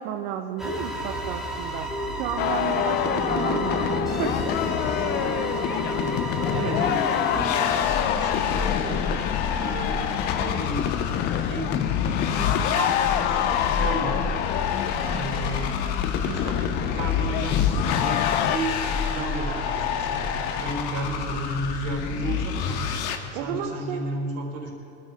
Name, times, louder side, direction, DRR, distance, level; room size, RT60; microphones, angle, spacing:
voice 1, 0.0-4.5 23.3-24.1, right 9 dB, 55° right, 4 dB, 1.2 m, -32 dB
sound 1, 0.6-7.4, right 1 dB, ahead, 2.5 m, -30 dB
sound 2, 2.4-18.6, left 11 dB, 30° left, 0.4 m, -27 dB
voice 2, 5.8-6.3 6.5-9.0 9.6-10.9 11.3-11.7 12.3-14.2 15.1-15.8 16.2-22.9 23.3-24.7, right 2 dB, 40° right, 0 dB, 4.3 m, -33 dB
sound 3, 7.4-23.2, left 7 dB, 50° left, 1.6 m, -28 dB
24.0 x 14.0 x 3.6 m, 2.5 s
supercardioid pair, 130°, 38 cm